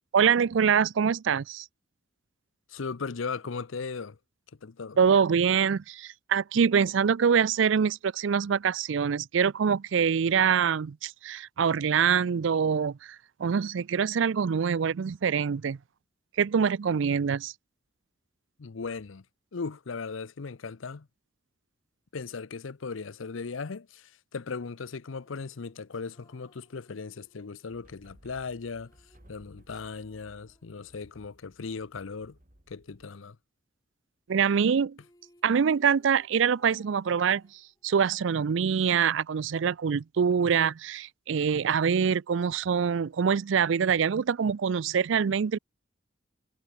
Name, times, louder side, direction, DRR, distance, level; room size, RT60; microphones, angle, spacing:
voice 1, 0.1-1.7 5.0-15.8 16.4-17.5 34.3-35.0 35.4-37.4 37.8-45.6, right 7 dB, 75° right, 0.4 m, -25 dB
voice 2, 2.7-4.2 4.6-5.0 18.6-19.2 19.5-21.1 22.1-28.9 29.3-32.4 32.7-33.4, left 4 dB, 85° left, 0.7 m, -37 dB
sound 1, 25.2-31.4 34.6-34.7 34.9-38.1, left 1 dB, 20° left, 6.4 m, -65 dB
sound 2, 27.7-33.0, equal, 40° right, 4.2 m, -58 dB
head